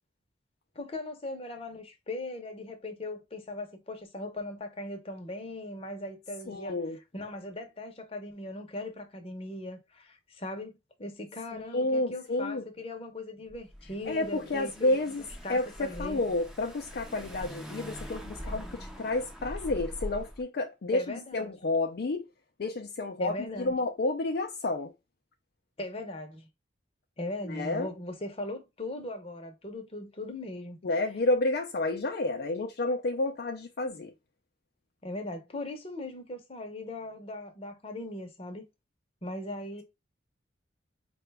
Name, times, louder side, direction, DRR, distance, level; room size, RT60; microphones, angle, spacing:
voice 1, 0.7-6.8 7.1-15.0 15.4-16.2 20.9-21.5 23.2-23.7 25.8-26.5 27.2-30.8 35.0-38.7 39.2-39.8, left 2 dB, 30° left, 0.7 m, -39 dB
voice 2, 6.5-7.0 11.5-12.6 14.1-15.2 15.5-22.3 22.6-24.9 27.4-27.9 30.8-34.1, left 2 dB, 55° left, 0.4 m, -30 dB
Car / Engine, 13.5-20.4, equal, 5° right, 0.6 m, -42 dB
4.8 x 2.3 x 3.3 m
head